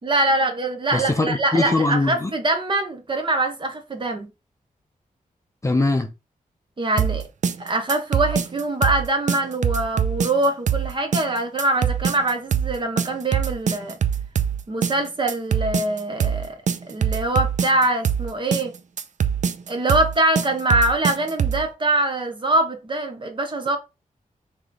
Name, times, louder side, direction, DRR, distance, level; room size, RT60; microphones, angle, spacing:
voice 1, 0.0-4.3 6.8-7.2 7.6-14.0 14.7-16.6 16.9-18.7 19.7-23.8, right 1 dB, 35° right, 0.8 m, -23 dB
voice 2, 0.9-2.3 5.6-6.1, left 2 dB, 20° left, 0.6 m, -21 dB
sound 1, 7.0-21.7, right 8 dB, 55° right, 0.4 m, -23 dB
3.3 x 3.1 x 3.9 m
wide cardioid pair, 155°, 15 cm